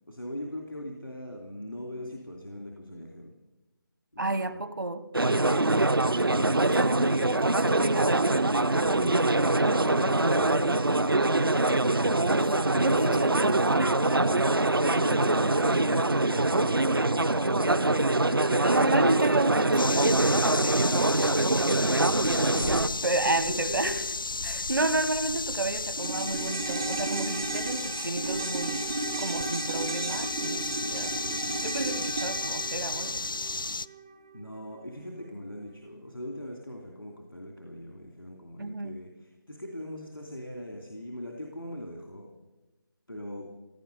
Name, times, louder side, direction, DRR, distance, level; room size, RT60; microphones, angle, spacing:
voice 1, 0.1-3.3 4.1-4.6 9.8-10.6 12.9-13.4 14.9-16.1 22.4-24.0 34.3-42.3 43.1-43.5, left 1 dB, 85° left, 1 dB, 2.9 m, -40 dB
voice 2, 4.2-5.0 6.6-8.5 12.8-13.8 18.6-21.2 23.0-24.0 24.4-28.9 29.2-31.1 31.6-33.2 38.6-38.9, right 2 dB, 65° right, 13 dB, 1.1 m, -31 dB
sound 1, 5.1-22.9, right 2 dB, 80° right, 0.8 m, -24 dB
sound 2, 19.8-33.9, left 3 dB, 65° left, 0.5 m, -33 dB
sound 3, 26.0-34.5 34.7-34.8, right 3 dB, 10° right, 0.4 m, -34 dB
16.5 x 11.0 x 6.8 m, 1.1 s
figure-of-eight pair, 160°, 12 cm